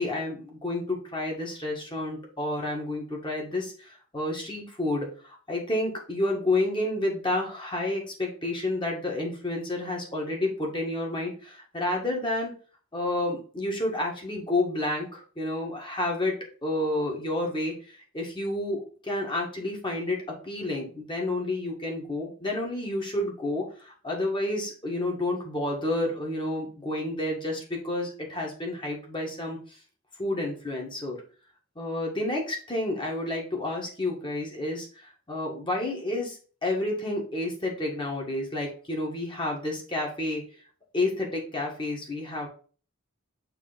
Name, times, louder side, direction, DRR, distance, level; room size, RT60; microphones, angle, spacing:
voice 1, 0.0-12.5 12.9-20.2 20.4-29.8 30.2-31.2 31.8-40.4 40.9-42.5, left 2 dB, 20° left, -1 dB, 1.7 m, -30 dB
6.7 x 3.3 x 5.1 m, 0.40 s
head